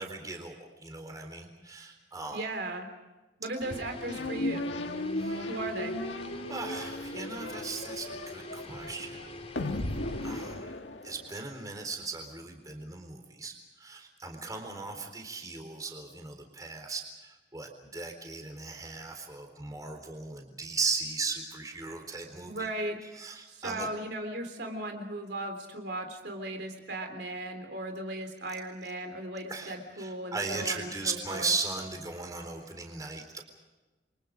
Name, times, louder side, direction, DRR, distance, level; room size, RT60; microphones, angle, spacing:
voice 1, 0.0-2.4 5.2-5.5 6.5-9.2 10.2-10.7 11.0-22.7 23.1-23.9 29.5-33.4, right 4 dB, 20° right, 4 dB, 3.9 m, -37 dB
voice 2, 2.3-2.9 3.4-4.7 5.5-5.9 22.5-23.0 23.5-31.5, right 1 dB, 65° right, 5 dB, 3.6 m, -37 dB
sound 1, 3.6-10.7, left 2 dB, 35° left, 3.4 m, -44 dB
sound 2, 4.1-11.6, left 1 dB, 80° left, 1.9 m, -36 dB
29.5 x 24.5 x 5.2 m, 1.2 s
head